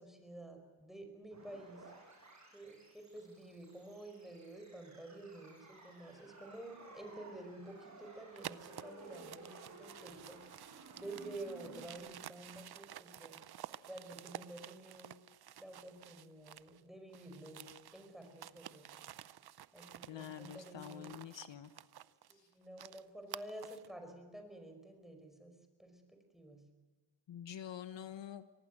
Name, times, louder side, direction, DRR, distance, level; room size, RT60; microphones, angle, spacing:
voice 1, 0.0-1.8 2.5-10.4 10.7-13.4 13.9-15.1 15.6-19.0 19.7-21.2 22.3-25.5 25.8-26.6, right 2 dB, ahead, 5 dB, 5.2 m, -50 dB
sound 1, 1.3-12.0, right 3 dB, 35° right, 6.4 m, -56 dB
sound 2, 8.4-16.8 17.1-23.9, right 11 dB, 50° right, 0.7 m, -52 dB
voice 2, 20.1-21.7 27.3-28.4, left 10 dB, 60° left, 11 dB, 1.1 m, -47 dB
24.0 x 18.5 x 7.7 m, 1.4 s
cardioid pair, 95°, 50 cm